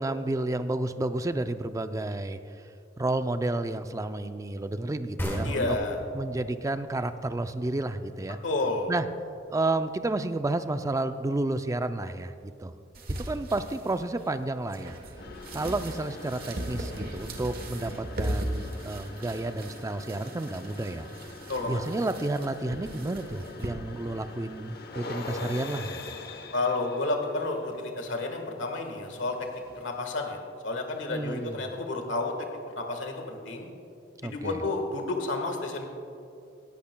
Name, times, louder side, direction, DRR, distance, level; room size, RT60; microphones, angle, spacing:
voice 1, 0.0-2.4 3.0-5.8 6.1-8.4 8.9-9.1 9.5-12.7 13.1-15.0 15.5-21.1 21.7-26.1 31.1-31.6 34.2-34.6, right 2 dB, 15° right, 10 dB, 0.4 m, -31 dB
sound 1, 5.2-8.6, equal, 10° left, 1.5 m, -36 dB
voice 2, 5.4-6.0 8.4-8.9 21.5-21.8 26.5-29.3 29.7-32.3 32.7-33.7 34.2-35.9, left 2 dB, 70° left, 3 dB, 1.5 m, -31 dB
sound 2, 12.9-23.7, right 1 dB, 50° right, 1.1 m, -38 dB
sound 3, 15.1-30.1, left 3 dB, 55° left, 0.9 m, -44 dB
18.5 x 14.0 x 2.3 m, 2.5 s
head